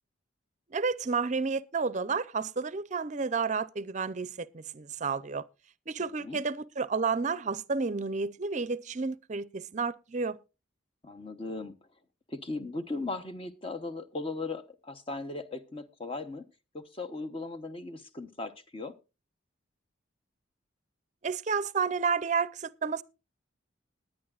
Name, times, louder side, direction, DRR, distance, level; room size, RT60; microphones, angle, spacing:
voice 1, 0.7-5.4 5.9-10.4 21.2-23.0, right 5 dB, 40° right, 0.5 m, -31 dB
voice 2, 11.0-11.8 12.3-16.4 16.7-18.9, left 3 dB, 25° left, 0.8 m, -38 dB
20.0 x 9.9 x 2.4 m
head